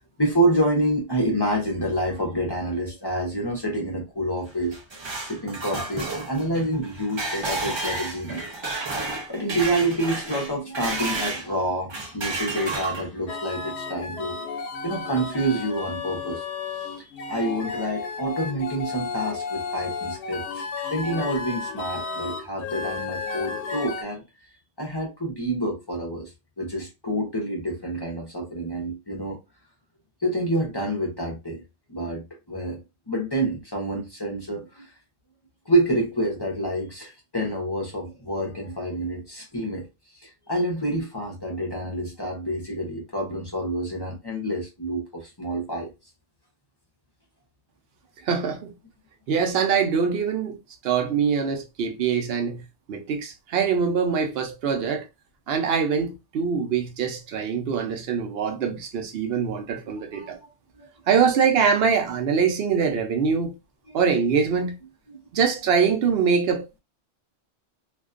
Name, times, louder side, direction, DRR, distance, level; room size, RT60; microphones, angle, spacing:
voice 1, 0.2-4.8 5.3-8.5 9.0-14.4 14.8-16.4 16.8-24.2 24.8-26.3 26.6-29.4 30.2-31.6 31.9-32.8 33.1-34.9 35.7-39.9 40.2-45.9 60.1-60.5 60.7-60.9 63.9-64.0 65.1-65.2, right 1 dB, 25° left, 0.6 m, -28 dB
sound 1, 4.5-11.5 11.9-13.3, right 3 dB, 35° right, 0.4 m, -31 dB
sound 2, 13.3-24.0, left 4 dB, 75° left, 0.8 m, -33 dB
voice 2, 48.3-48.7 49.3-50.6 50.8-52.6 52.9-55.1 55.5-60.4 61.1-63.5 63.9-64.8 65.3-66.8, right 6 dB, 65° right, 0.8 m, -23 dB
2.5 x 2.2 x 2.4 m
omnidirectional pair, 1.2 m